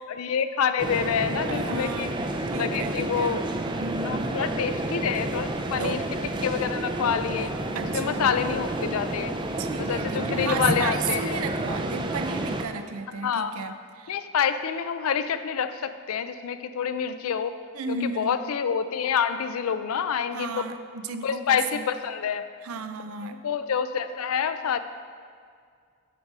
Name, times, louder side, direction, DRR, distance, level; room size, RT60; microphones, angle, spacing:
voice 1, 0.1-2.1 2.5-3.4 4.0-6.0 6.4-7.5 7.9-9.3 9.8-11.4 13.2-13.7 14.1-17.6 17.9-20.5 21.2-22.4 23.2-24.8, left 7 dB, 85° left, 11 dB, 0.4 m, -27 dB
sound 1, 0.8-12.6, right 2 dB, 20° right, 0.4 m, -30 dB
voice 2, 1.5-2.2 2.5-4.3 5.8-6.0 7.7-8.3 9.6-14.2 17.7-18.4 20.3-21.9 22.6-23.4, right 4 dB, 90° right, 9 dB, 0.5 m, -34 dB
8.5 x 4.7 x 5.4 m, 2.1 s
head